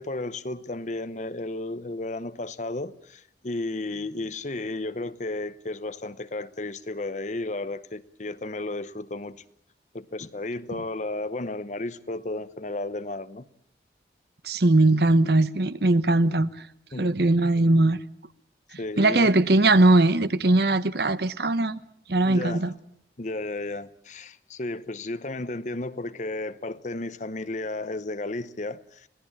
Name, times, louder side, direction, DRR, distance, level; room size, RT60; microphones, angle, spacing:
voice 1, 0.0-9.4 9.9-13.5 16.9-17.2 18.8-19.3 22.3-22.7 23.2-29.1, left 2 dB, 40° left, 0.9 m, -33 dB
voice 2, 14.4-16.5 17.0-18.0 18.7-21.8 22.1-22.7, right 2 dB, 60° right, 1.0 m, -20 dB
25.5 x 17.5 x 8.7 m
head